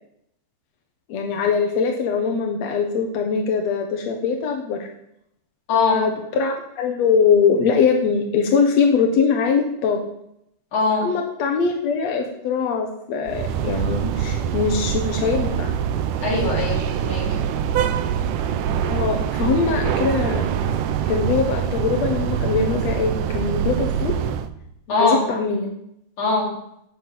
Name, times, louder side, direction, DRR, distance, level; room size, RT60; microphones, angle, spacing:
voice 1, 1.1-4.9 5.7-10.0 11.0-15.7 18.9-20.5 21.1-24.2 24.9-25.7, left 5 dB, 60° left, 2 dB, 1.8 m, -22 dB
voice 2, 5.7-6.0 10.7-11.1 16.2-17.2 24.9-25.2 26.2-26.5, left 3 dB, 40° left, -5 dB, 5.1 m, -21 dB
sound 1, 13.3-24.5, right 8 dB, 75° right, 2.0 m, -24 dB
13.0 x 7.0 x 8.7 m, 0.78 s
omnidirectional pair, 4.5 m